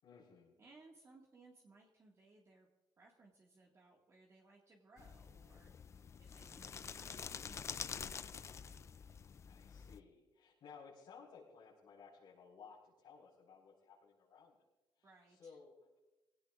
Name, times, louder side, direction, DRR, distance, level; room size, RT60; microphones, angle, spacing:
voice 1, 0.0-0.6 9.4-14.6 14.9-16.0, left 5 dB, 80° left, -7 dB, 4.8 m, -58 dB
voice 2, 0.6-2.7 3.0-8.9 15.0-15.6, right 3 dB, 40° right, -2 dB, 1.9 m, -64 dB
sound 1, 5.0-10.0, left 6 dB, 35° left, 0.4 m, -48 dB
21.5 x 17.0 x 2.5 m, 1.1 s
cardioid pair, 135°, 8 cm